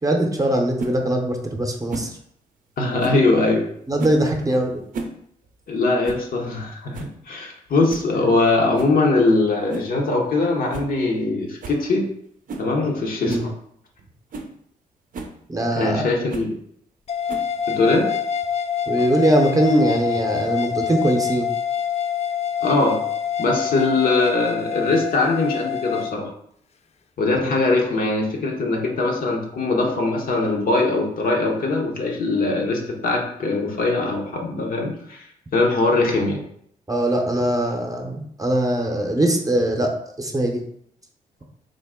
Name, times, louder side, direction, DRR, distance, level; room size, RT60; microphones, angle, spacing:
voice 1, 0.0-2.1 3.9-4.8 8.1-8.2 13.2-13.5 15.5-16.1 18.9-21.5 36.9-40.6, right 1 dB, 20° right, 2 dB, 0.7 m, -21 dB
sound 1, 0.8-1.0 1.9-2.2 3.0-3.3 4.0-4.3 4.8-5.2 5.5-5.6 6.0-6.3 6.6-6.7 6.9-7.2 7.9-8.1 8.7-9.0 9.7-10.0 10.3-10.4 10.7-10.9 11.2-11.3 11.6-11.8 12.5-12.7 13.3-13.5 14.0-14.1 14.3-14.5 15.1-15.4 16.3-16.5 17.3-17.6, right 3 dB, 55° right, 0.5 m, -33 dB
voice 2, 2.8-3.6 5.7-12.0 12.6-13.4 15.7-16.5 17.7-18.1 22.6-23.0 23.4-26.3 27.2-35.3 35.5-36.4, left 3 dB, 65° left, 1 dB, 0.8 m, -21 dB
sound 2, 17.1-26.1, left 8 dB, 40° left, 0.4 m, -26 dB
3.7 x 2.0 x 3.6 m, 0.66 s
supercardioid pair, 60°, 16 cm